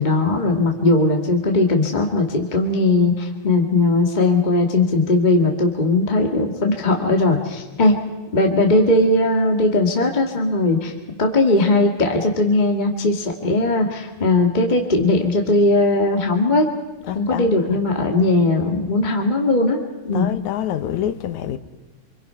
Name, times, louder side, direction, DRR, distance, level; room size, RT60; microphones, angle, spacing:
voice 1, 0.0-8.0 8.3-10.9 11.2-16.7 17.1-19.8 20.0-20.3, left 2 dB, 20° left, 1.5 m, -18 dB
voice 2, 17.0-17.8 20.1-21.6, left 11 dB, 75° left, 2.4 m, -27 dB
28.5 x 23.5 x 5.7 m
omnidirectional pair, 3.5 m